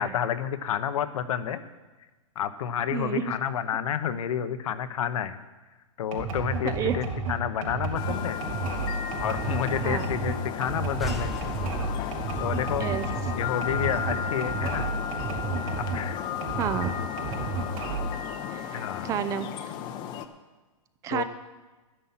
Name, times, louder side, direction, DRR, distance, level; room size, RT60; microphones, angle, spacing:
voice 1, 0.0-1.6 2.4-5.4 6.0-8.4 9.2-11.4 12.4-12.9 13.4-14.9 15.8-16.2 18.7-19.1 21.1-21.2, left 9 dB, 75° left, 11 dB, 1.0 m, -30 dB
voice 2, 2.9-3.3 6.6-7.0 9.8-10.1 12.8-13.0 16.6-16.9 18.5-19.5 21.0-21.2, right 9 dB, 20° right, 12 dB, 0.5 m, -30 dB
sound 1, 6.1-16.1 16.4-18.2, right 4 dB, 70° right, 3.0 m, -32 dB
sound 2, 7.9-20.2, left 8 dB, 25° left, 0.7 m, -34 dB
sound 3, 11.0-14.5, equal, ahead, 0.9 m, -39 dB
12.0 x 10.0 x 5.7 m, 1.2 s
hypercardioid pair, 160°, 18 cm